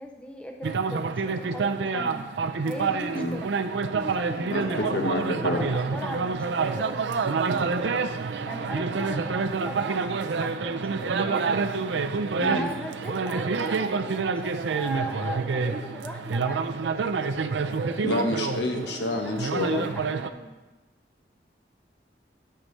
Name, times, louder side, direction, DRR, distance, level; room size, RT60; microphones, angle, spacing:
voice 1, 0.0-2.3 2.6-3.5 4.0-5.1 5.4-8.0 8.4-11.5 12.5-17.0 17.8-18.3 18.8-20.5, equal, 5° left, 2 dB, 0.5 m, -39 dB
sound 1, 0.6-20.3, right 4 dB, 85° right, 0.5 m, -28 dB
voice 2, 4.9-5.7 12.4-12.7 18.0-19.8, left 1 dB, 75° left, 3 dB, 1.2 m, -28 dB
11.0 x 7.7 x 3.2 m, 1.2 s
head